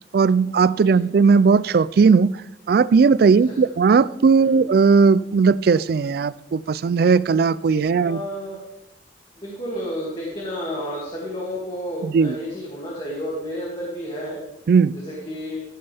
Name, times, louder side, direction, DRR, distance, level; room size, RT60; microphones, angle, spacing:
voice 1, 0.1-2.3 2.7-8.2 12.0-12.4 14.7-15.0, right 5 dB, 60° right, 0.3 m, -17 dB
voice 2, 8.0-8.6 9.4-14.4 14.9-15.6, equal, 30° left, 2.4 m, -31 dB
15.0 x 8.8 x 3.5 m
head